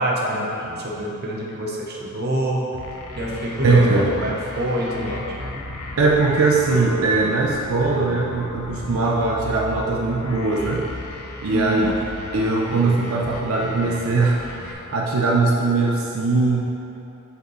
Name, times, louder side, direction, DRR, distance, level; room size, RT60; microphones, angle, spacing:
voice 1, 0.0-2.7 3.2-5.7 11.5-11.9, right 1 dB, 50° right, -3 dB, 0.9 m, -26 dB
sound 1, 2.7-14.7, left 2 dB, 90° left, 0.6 m, -35 dB
voice 2, 3.6-4.1 6.0-10.8 11.4-11.9 12.3-16.6, right 3 dB, 90° right, -2 dB, 0.5 m, -20 dB
6.5 x 5.1 x 3.1 m, 2.9 s
head